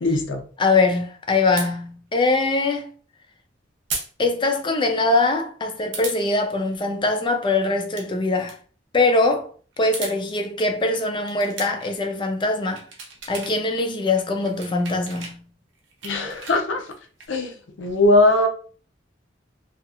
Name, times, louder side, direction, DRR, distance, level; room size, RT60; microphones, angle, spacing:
voice 1, 0.0-0.4 16.0-16.8 17.3-17.5 17.8-18.5, left 2 dB, 75° left, 0.6 m, -19 dB
voice 2, 0.6-2.9 4.2-8.6 8.9-9.5 9.8-12.8 13.3-15.4, left 3 dB, 25° left, 0.4 m, -22 dB
sound 1, 1.6-1.7 3.9-4.1 4.4-4.5 5.9-6.2 7.7-8.1 8.4-8.6 9.7-10.2 11.2-11.9 12.5-13.5 13.8-15.4 15.7-17.3, right 4 dB, 80° right, 0.7 m, -35 dB
2.7 x 2.4 x 2.4 m
head